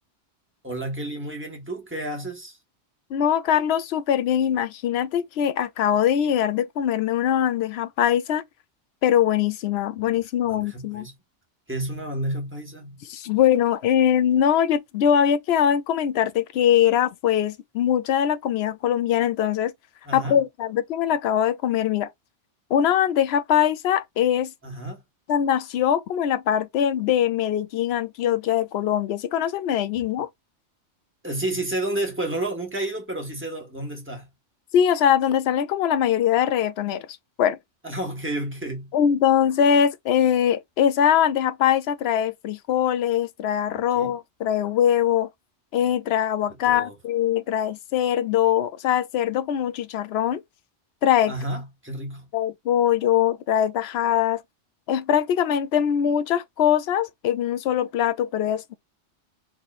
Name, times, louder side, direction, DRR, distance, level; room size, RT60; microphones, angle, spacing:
voice 1, 0.6-2.6 10.0-10.2 10.4-11.1 11.7-13.0 20.0-20.4 24.6-25.0 31.2-34.3 37.8-38.9 43.7-44.1 46.6-46.9 51.3-52.3, right 1 dB, 10° right, 1.5 m, -31 dB
voice 2, 3.1-8.4 9.0-11.1 13.1-19.7 20.1-22.1 22.7-24.5 25.3-30.3 34.7-37.1 37.4-37.6 38.9-45.3 45.7-50.4 51.0-51.3 52.3-54.4 54.9-58.7, left 9 dB, 65° left, 0.8 m, -22 dB
4.8 x 2.8 x 2.5 m
omnidirectional pair, 1.2 m